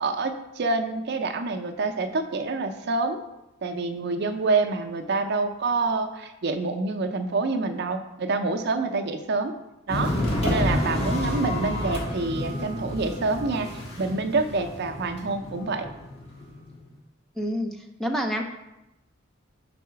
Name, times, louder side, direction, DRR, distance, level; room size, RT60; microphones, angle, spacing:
voice 1, 0.0-3.2 3.6-9.5 9.9-10.1 10.4-15.9, right 3 dB, 55° right, 6 dB, 0.5 m, -27 dB
sound 1, 9.9-16.8, left 1 dB, 30° left, 1.5 m, -29 dB
voice 2, 17.4-18.4, equal, ahead, 3 dB, 0.4 m, -28 dB
4.6 x 4.1 x 5.6 m, 0.93 s
head